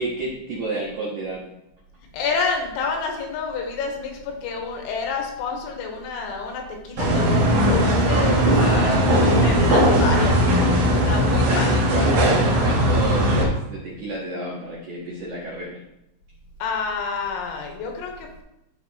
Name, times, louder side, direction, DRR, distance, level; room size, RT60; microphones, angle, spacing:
voice 1, 0.0-1.4 8.5-9.4 11.3-15.8, right 2 dB, 80° right, -6 dB, 1.7 m, -30 dB
voice 2, 2.1-7.1 7.6-8.9 9.3-10.4 11.1-11.8 16.6-18.4, left 5 dB, 85° left, 2 dB, 3.8 m, -28 dB
sound 1, 7.0-13.4, equal, 60° right, 2.1 m, -18 dB
13.5 x 4.5 x 3.1 m, 0.87 s
omnidirectional pair, 5.9 m